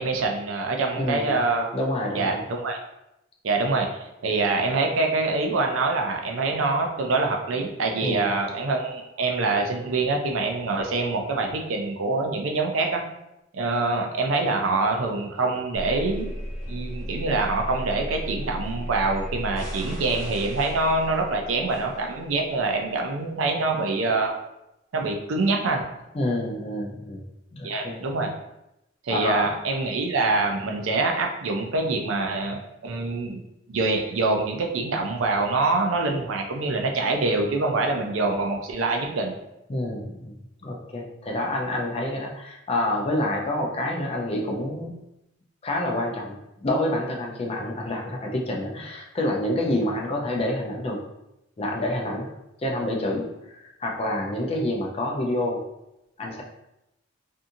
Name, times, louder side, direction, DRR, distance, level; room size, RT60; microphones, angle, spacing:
voice 1, 0.0-1.7 2.1-2.8 3.4-3.9 4.2-13.0 13.5-16.3 16.7-24.3 24.9-25.8 27.6-28.3 29.0-33.4 33.7-39.4, right 3 dB, 90° right, 2 dB, 0.5 m, -25 dB
voice 2, 1.0-1.3 1.7-2.4 8.0-8.3 26.1-27.2 27.5-28.0 29.1-29.5 39.7-45.0 45.6-51.0 51.6-52.3 52.6-55.6 56.2-56.4, left 1 dB, 30° left, -1 dB, 0.4 m, -28 dB
sound 1, 15.7-22.6, equal, 35° right, 1.1 m, -35 dB
2.6 x 2.4 x 2.6 m, 0.87 s
head